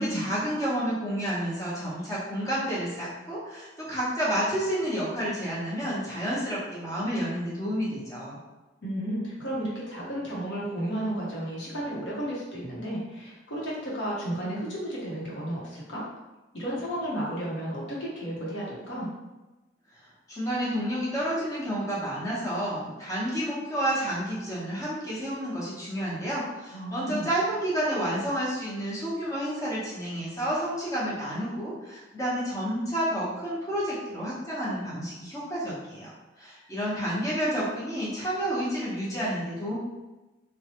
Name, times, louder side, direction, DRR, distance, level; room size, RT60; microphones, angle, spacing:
voice 1, 0.0-8.4 20.3-39.8, equal, 20° left, -8 dB, 0.8 m, -30 dB
voice 2, 8.8-16.1 16.5-19.1 26.7-27.3, right 1 dB, 85° left, -6 dB, 0.9 m, -33 dB
3.1 x 2.2 x 2.8 m, 1.1 s
head